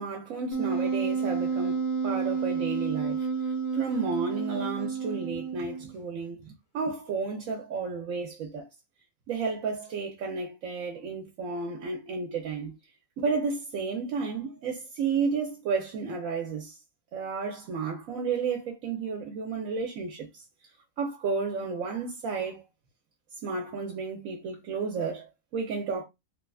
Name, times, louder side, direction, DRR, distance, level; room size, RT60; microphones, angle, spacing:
voice 1, 0.0-3.3 3.7-6.4 6.7-8.7 9.3-12.7 13.2-16.7 17.1-20.4 21.0-22.6 23.4-26.0, right 4 dB, 80° right, 1.1 m, -32 dB
Wind instrument woodwind instrument, 0.5-5.9, right 5 dB, 55° left, 0.9 m, -30 dB
3.1 x 2.3 x 2.3 m
omnidirectional pair, 1.4 m